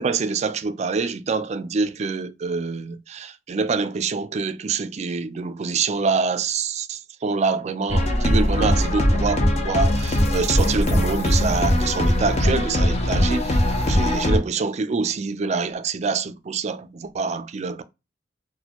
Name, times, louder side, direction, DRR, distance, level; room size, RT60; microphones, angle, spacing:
voice 1, 0.0-17.8, right 4 dB, 40° right, 0.4 m, -26 dB
sound 1, 7.9-14.4, left 1 dB, 35° left, 0.6 m, -20 dB
4.1 x 2.2 x 2.9 m
head